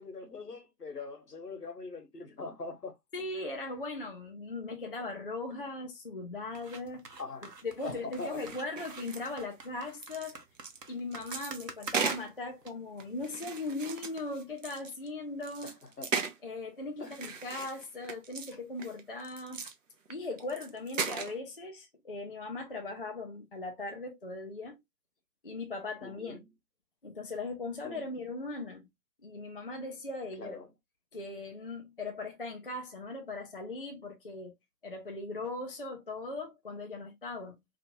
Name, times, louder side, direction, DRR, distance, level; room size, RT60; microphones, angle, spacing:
voice 1, 0.0-2.9 5.5-5.7 7.2-7.5 7.8-8.4 15.6-16.1 17.0-17.3 26.0-26.4 27.8-28.1 30.4-30.7, left 3 dB, 75° left, 1.2 m, -42 dB
voice 2, 3.1-7.0 7.6-10.4 10.9-15.8 16.4-19.7 20.1-24.8 25.4-26.4 27.0-28.9 29.2-30.6 31.1-34.5 34.8-37.6, left 2 dB, 40° left, 0.4 m, -39 dB
sound 1, 6.5-12.7, right 3 dB, 85° right, 0.9 m, -46 dB
sound 2, 8.1-9.5 9.8-12.3 13.0-15.1 15.4-16.4 17.0-18.5 18.8-19.7 20.1-20.2 20.4-21.4, right 5 dB, 50° right, 0.6 m, -37 dB
2.9 x 2.4 x 2.8 m
figure-of-eight pair, 135°, 48 cm